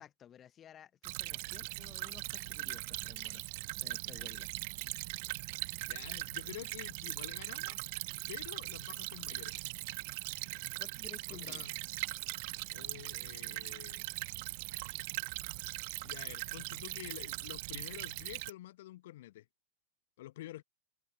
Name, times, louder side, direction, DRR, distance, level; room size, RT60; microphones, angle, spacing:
voice 1, 0.0-3.4 3.8-4.5 10.8-11.7, left 9 dB, 25° left, 1.3 m, -55 dB
Stream / Trickle dribble, 1.0-18.5, right 26 dB, 50° right, 0.6 m, -40 dB
voice 2, 5.9-7.8 8.3-9.5 11.3-11.8 12.7-14.0 16.0-19.5 20.2-20.6, left 15 dB, 55° left, 1.1 m, -48 dB
open air
figure-of-eight pair, 90°, 0 cm